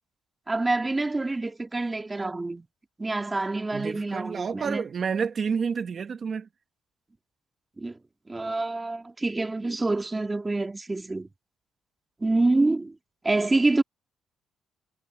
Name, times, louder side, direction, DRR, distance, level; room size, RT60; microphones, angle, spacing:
voice 1, 0.5-2.7 3.0-4.9 7.8-8.0 8.3-11.3 12.2-13.0 13.2-13.8, right 2 dB, 20° right, 1.8 m, -26 dB
voice 2, 3.7-6.5, right 6 dB, 45° right, 1.4 m, -29 dB
cardioid pair, 90°, 0 cm